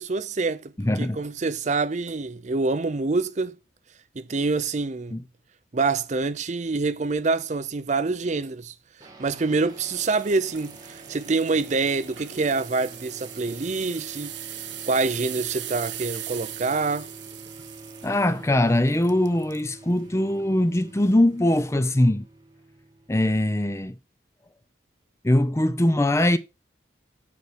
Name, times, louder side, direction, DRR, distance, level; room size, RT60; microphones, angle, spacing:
voice 1, 0.0-3.6 4.1-5.2 5.7-17.1, right 3 dB, 35° right, 0.5 m, -26 dB
voice 2, 0.8-1.2 5.1-5.2 18.0-22.3 23.1-24.0 25.2-26.4, left 1 dB, 15° left, 0.5 m, -21 dB
sound 1, 9.0-23.8, right 2 dB, 20° right, 1.8 m, -47 dB
sound 2, 9.8-19.7 20.2-20.4 21.0-21.1, right 12 dB, 65° right, 0.9 m, -40 dB
8.3 x 6.2 x 5.9 m
head